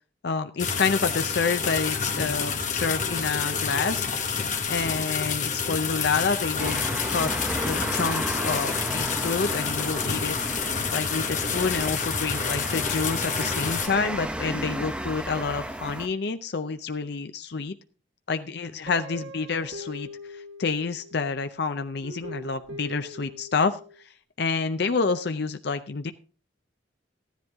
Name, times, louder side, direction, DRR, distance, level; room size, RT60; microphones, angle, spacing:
voice 1, 0.2-4.1 4.7-7.3 7.6-10.4 10.9-17.7 18.3-23.8 24.0-26.1, left 4 dB, 55° left, 8 dB, 0.6 m, -28 dB
sound 1, 0.6-13.9, left 6 dB, 40° left, 1.4 m, -28 dB
sound 2, 6.6-16.1, right 1 dB, 5° right, 0.7 m, -33 dB
Guitar, 18.9-21.3 22.0-24.0, equal, 80° right, 2.1 m, -42 dB
13.5 x 10.5 x 3.6 m, 0.38 s
head